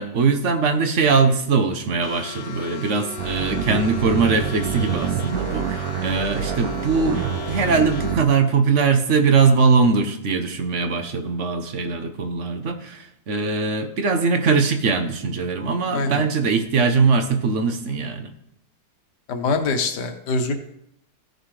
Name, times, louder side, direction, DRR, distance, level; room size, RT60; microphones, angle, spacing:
voice 1, 0.0-7.2 7.5-18.3, right 4 dB, 50° right, 7 dB, 1.2 m, -21 dB
sound 1, 2.0-8.2, left 7 dB, 55° left, 0.9 m, -36 dB
sound 2, 3.2-8.3, right 9 dB, 70° right, 1.0 m, -27 dB
voice 2, 15.9-16.2 19.3-20.5, left 3 dB, 80° left, 5 dB, 1.7 m, -24 dB
16.0 x 6.7 x 3.3 m, 0.76 s
omnidirectional pair, 1.8 m